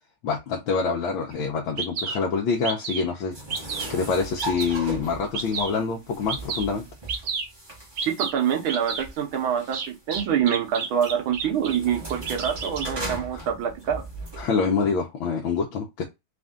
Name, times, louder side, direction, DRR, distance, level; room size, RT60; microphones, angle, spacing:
voice 1, 0.2-3.3 3.9-6.8 13.3-13.4 14.4-16.1, left 5 dB, 80° left, 1.6 m, -26 dB
Bird vocalization bird call bird song, 1.3-1.4 1.8-2.2 2.6-3.1 3.5-3.9 4.4-4.8 5.3-5.8 6.3-6.7 7.1-7.5 8.0-8.3 8.7-9.0 9.7-11.8 12.1-12.9, right 5 dB, 60° right, 1.4 m, -31 dB
sound 1, 3.3-14.5, right 2 dB, 15° right, 1.0 m, -38 dB
voice 2, 8.0-14.0, right 8 dB, 85° right, 1.8 m, -26 dB
4.3 x 2.6 x 3.6 m
omnidirectional pair, 2.2 m